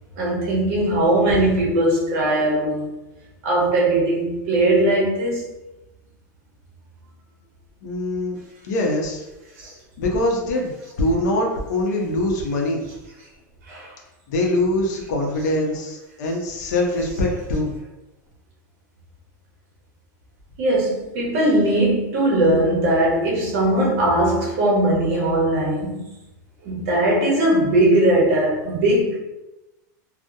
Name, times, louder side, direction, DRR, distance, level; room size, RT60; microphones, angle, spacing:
voice 1, 0.2-2.9 3.4-5.5 9.6-9.7 13.7-13.9 20.6-26.0 26.6-29.2, right 1 dB, 50° right, 0.8 m, -19 dB
voice 2, 7.8-8.4 8.7-9.2 10.0-12.9 14.3-17.7, left 1 dB, 60° left, 0.6 m, -23 dB
2.7 x 2.0 x 2.3 m
supercardioid pair, 175°, 10 cm